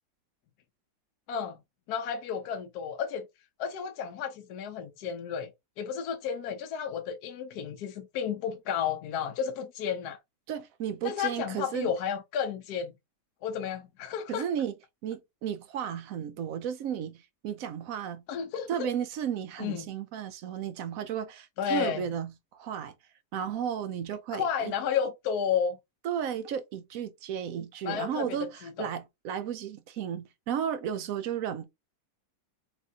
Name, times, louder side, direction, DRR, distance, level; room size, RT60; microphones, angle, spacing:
voice 1, 1.3-1.6 1.9-3.3 3.6-5.5 5.8-10.2 11.0-12.9 13.4-14.4 18.3-18.9 19.6-19.9 21.6-22.0 24.3-25.8 27.8-28.9, left 7 dB, 70° left, 1.1 m, -32 dB
voice 2, 10.5-11.9 14.3-14.8 15.0-18.2 18.7-22.9 23.3-24.7 26.0-31.6, right 8 dB, 70° right, 0.9 m, -34 dB
5.7 x 2.5 x 2.7 m
omnidirectional pair, 1.8 m